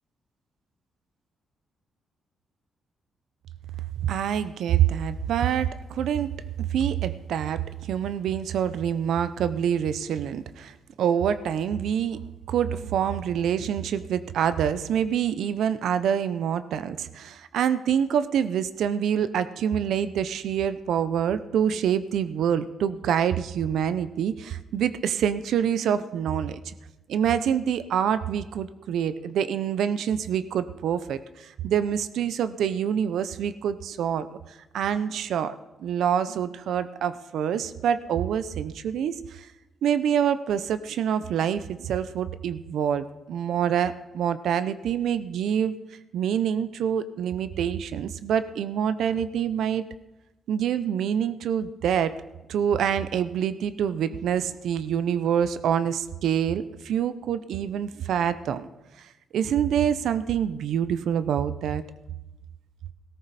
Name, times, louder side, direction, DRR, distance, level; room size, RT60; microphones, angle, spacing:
voice 1, 4.0-6.4 6.7-12.2 12.5-26.7 27.1-34.3 34.7-39.5 39.8-45.7 46.1-49.8 50.5-52.2 52.5-58.7 59.3-61.8, right 8 dB, 80° right, 13 dB, 0.6 m, -26 dB
17.0 x 13.5 x 4.1 m, 1.0 s
cardioid pair, 110°, 0 cm